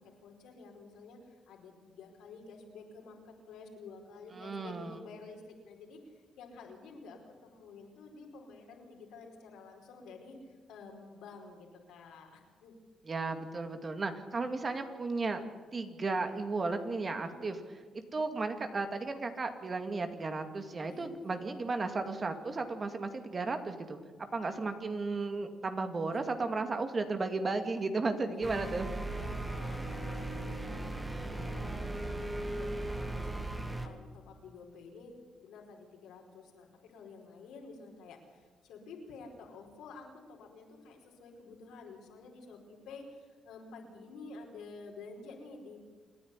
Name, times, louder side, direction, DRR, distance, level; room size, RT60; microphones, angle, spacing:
voice 1, 0.0-12.7 17.2-17.6 20.9-21.6 26.1-26.5 29.1-30.3 31.1-45.8, left 4 dB, 85° left, 1 dB, 4.9 m, -51 dB
voice 2, 4.3-4.9 13.1-15.4 15.7-17.6 18.1-28.9, right 3 dB, 35° right, 7 dB, 2.4 m, -34 dB
sound 1, 28.4-33.9, right 2 dB, 10° right, 2.4 m, -37 dB
28.0 x 10.0 x 9.8 m, 1.6 s
cardioid pair, 90°, 0 cm